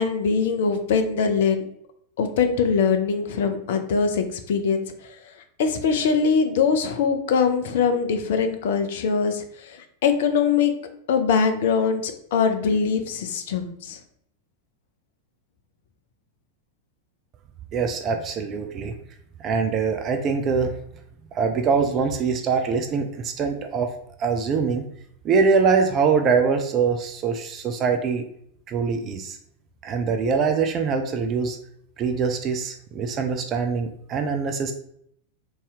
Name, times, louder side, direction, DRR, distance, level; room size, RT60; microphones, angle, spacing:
voice 1, 0.0-1.6 2.2-4.8 5.6-10.7 11.1-14.0, left 5 dB, 55° left, 7 dB, 0.5 m, -22 dB
voice 2, 17.7-18.9 19.4-20.8 21.3-23.9 24.2-24.9 25.2-28.2 28.7-29.4 29.8-31.6 32.0-34.7, right 5 dB, 30° right, 5 dB, 0.4 m, -23 dB
3.1 x 2.7 x 3.4 m, 0.70 s
figure-of-eight pair, 90°, 0 cm